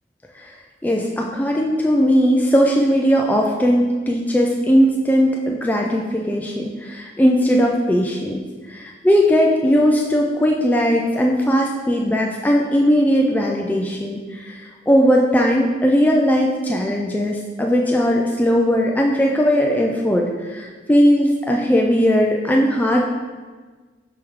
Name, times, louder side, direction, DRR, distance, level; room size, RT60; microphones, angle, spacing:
voice 1, 0.8-8.4 8.7-23.0, equal, 10° left, 0 dB, 0.3 m, -18 dB
6.1 x 4.5 x 3.6 m, 1.4 s
head